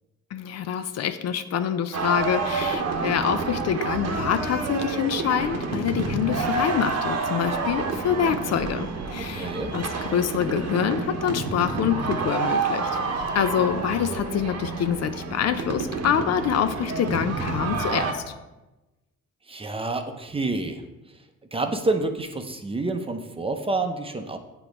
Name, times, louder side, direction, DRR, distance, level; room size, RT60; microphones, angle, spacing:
voice 1, 0.3-9.8 10.1-12.9 13.3-18.2, left 9 dB, 60° left, 10 dB, 0.5 m, -26 dB
sound 1, 1.9-18.1, right 4 dB, 60° right, 0.9 m, -29 dB
voice 2, 9.2-9.7 13.5-13.8 19.5-20.8 21.5-24.4, right 2 dB, 20° right, 5 dB, 0.6 m, -28 dB
7.9 x 3.0 x 5.0 m, 1.1 s
cardioid pair, 90°, 30 cm